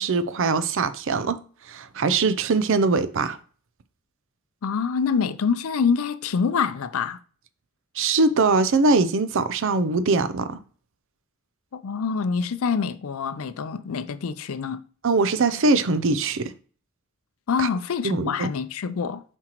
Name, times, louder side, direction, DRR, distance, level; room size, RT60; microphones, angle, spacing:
voice 1, 0.0-1.4 1.7-3.4 8.0-10.6 15.0-16.5 17.6-17.7 18.0-18.5, right 3 dB, 60° right, 0.5 m, -22 dB
voice 2, 4.6-7.2 11.8-14.8 17.5-19.2, left 6 dB, 70° left, 0.5 m, -25 dB
7.6 x 4.5 x 3.0 m
head